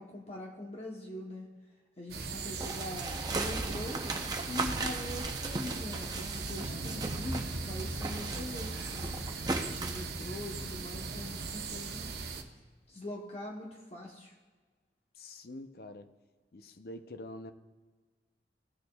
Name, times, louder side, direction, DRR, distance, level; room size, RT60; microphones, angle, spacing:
voice 1, 0.0-1.5 2.0-4.0 4.5-9.2 9.7-12.1 12.9-14.3, left 1 dB, 35° left, -1 dB, 0.9 m, -42 dB
sound 1, 2.1-12.4, right 3 dB, 65° right, 0.8 m, -39 dB
sound 2, 2.6-7.5 7.8-10.1, right 3 dB, 20° right, 0.6 m, -37 dB
Guitar, 12.7-13.0, right 1 dB, 85° left, 2.7 m, -61 dB
voice 2, 15.1-16.1 16.5-17.5, left 1 dB, 60° left, 9 dB, 0.6 m, -45 dB
17.0 x 6.5 x 2.3 m, 1.4 s
head